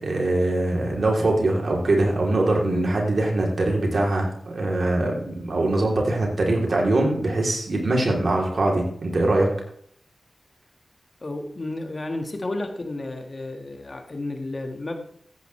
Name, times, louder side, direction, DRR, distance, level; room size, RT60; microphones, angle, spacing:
voice 1, 0.0-9.5, right 2 dB, 65° right, 0 dB, 3.3 m, -22 dB
voice 2, 11.2-15.0, left 2 dB, 45° left, 5 dB, 1.8 m, -32 dB
13.5 x 9.4 x 3.3 m, 0.63 s
cardioid pair, 50°, 0 cm